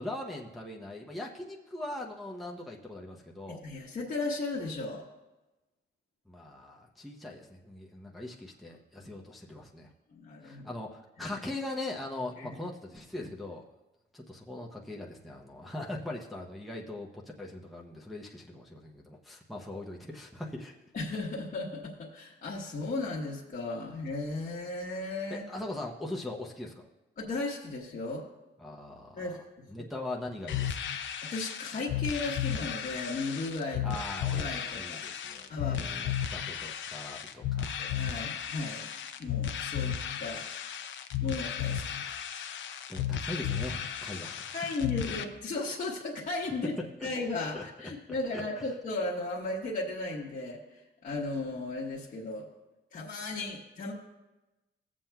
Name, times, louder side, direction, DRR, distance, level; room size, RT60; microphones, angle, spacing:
voice 1, 0.0-3.6 6.3-9.9 10.4-13.6 14.1-20.7 25.3-26.8 28.6-29.3 29.7-30.9 33.8-37.7 42.9-44.6 45.0-45.1 47.5-47.9 48.6-48.7, left 2 dB, ahead, -2 dB, 0.7 m, -41 dB
voice 2, 3.5-5.0 10.1-10.7 11.2-11.3 12.4-12.5 20.9-25.4 27.2-28.3 29.2-29.9 31.2-34.0 34.3-35.1 35.5-35.9 37.8-38.9 39.2-40.4 41.2-42.2 44.5-46.7 47.0-52.5 52.9-53.9, left 3 dB, 45° left, -5 dB, 1.1 m, -36 dB
sound 1, 30.5-45.2, left 9 dB, 70° left, 0.6 m, -34 dB
16.0 x 7.4 x 2.3 m, 1.1 s
cardioid pair, 120°, 20 cm